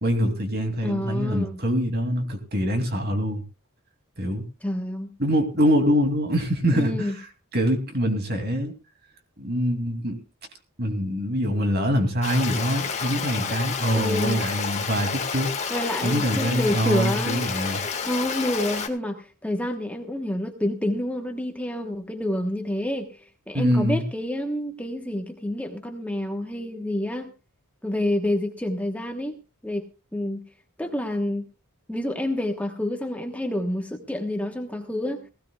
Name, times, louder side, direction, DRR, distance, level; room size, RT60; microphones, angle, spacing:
voice 1, 0.0-3.4 4.2-4.4 5.2-7.1 7.5-8.7 9.4-10.2 10.8-15.5 16.0-17.8 23.5-24.0, equal, 45° right, 5 dB, 2.8 m, -24 dB
voice 2, 0.8-1.6 4.6-5.1 6.7-7.1 13.9-14.4 15.7-17.5 17.8-23.1 23.5-27.3 27.8-29.4 29.6-29.8 30.1-30.4 30.8-31.5 31.9-35.3, left 1 dB, 5° left, 4 dB, 1.2 m, -28 dB
Stream, 12.2-18.9, left 5 dB, 30° left, 1.8 m, -30 dB
19.0 x 16.0 x 2.4 m, 0.30 s
head